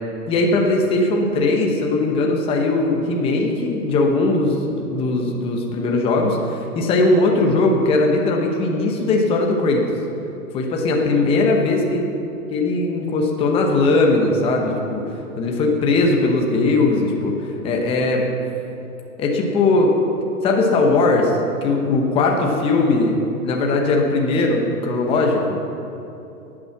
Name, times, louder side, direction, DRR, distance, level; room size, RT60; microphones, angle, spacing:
voice 1, 0.3-9.8 10.5-12.0 12.5-15.0 15.4-18.3 19.2-19.9 20.4-21.3 21.6-23.2 23.4-25.6, left 2 dB, 10° left, 1 dB, 0.8 m, -19 dB
10.5 x 8.7 x 7.1 m, 2.9 s
hypercardioid pair, 150°, 46 cm